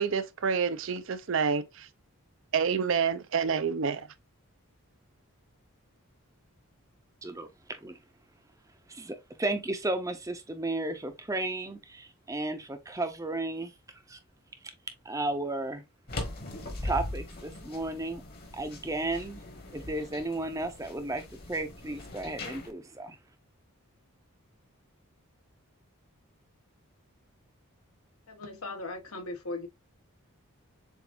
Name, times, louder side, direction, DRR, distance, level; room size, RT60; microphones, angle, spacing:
voice 1, 0.0-1.9 2.5-4.1, right 6 dB, 60° right, 0.5 m, -28 dB
voice 2, 8.9-13.7 14.1-14.2 15.0-15.8 16.8-18.2 18.5-19.4 19.7-21.2 21.5-23.2, right 2 dB, 15° right, 0.6 m, -33 dB
sound 1, 16.1-22.7, left 1 dB, 45° left, 1.3 m, -40 dB
voice 3, 28.3-29.7, left 2 dB, 80° left, 1.2 m, -38 dB
7.0 x 2.5 x 2.5 m
head